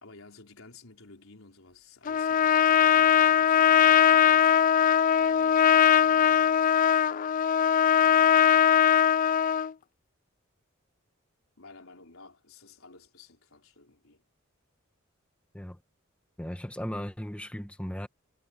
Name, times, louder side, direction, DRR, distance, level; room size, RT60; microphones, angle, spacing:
voice 1, 0.0-4.5 5.2-6.7 8.0-8.6 11.6-14.2, left 3 dB, 80° left, 4.1 m, -53 dB
Trumpet, 2.1-9.7, left 9 dB, 40° left, 0.3 m, -21 dB
voice 2, 16.4-18.1, equal, 5° left, 1.4 m, -36 dB
head